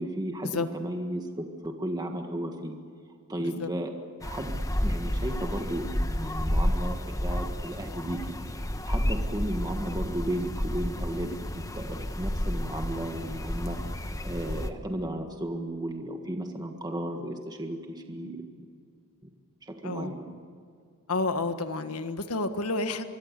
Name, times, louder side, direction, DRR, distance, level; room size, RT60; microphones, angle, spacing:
voice 1, 0.0-2.8 3.3-3.9 4.2-13.8 14.2-18.6 19.6-20.4, right 1 dB, 20° right, 3 dB, 1.7 m, -34 dB
voice 2, 3.4-3.7 19.8-20.1 21.1-23.1, left 3 dB, 80° left, 8 dB, 1.6 m, -30 dB
sound 1, 4.2-14.7, equal, 15° left, 1.2 m, -31 dB
25.5 x 23.0 x 6.8 m, 2.3 s
head